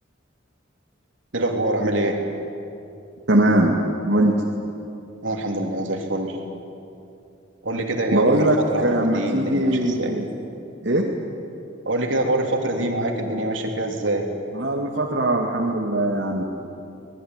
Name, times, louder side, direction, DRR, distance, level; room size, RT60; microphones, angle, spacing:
voice 1, 1.3-2.2 5.2-6.4 7.6-10.1 11.9-14.3, right 1 dB, 75° right, 2 dB, 3.5 m, -25 dB
voice 2, 3.3-3.7 4.1-4.3 8.1-10.3 10.8-11.0 14.5-16.4, right 1 dB, 60° right, -1 dB, 2.3 m, -20 dB
25.5 x 20.0 x 9.7 m, 2.7 s
head